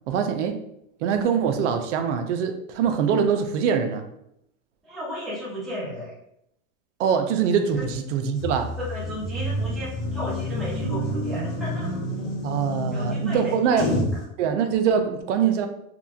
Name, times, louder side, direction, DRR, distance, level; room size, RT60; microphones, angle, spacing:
voice 1, 0.1-0.6 1.0-4.1 7.0-8.8 12.4-14.0 14.4-15.7, right 7 dB, 65° right, 7 dB, 0.5 m, -23 dB
voice 2, 4.8-6.1 7.7-7.9 8.8-11.9 12.9-13.9, equal, ahead, -9 dB, 0.3 m, -34 dB
sound 1, 8.4-14.2, equal, 55° left, 1.2 m, -28 dB
2.9 x 2.2 x 2.3 m, 0.77 s
supercardioid pair, 145°, 39 cm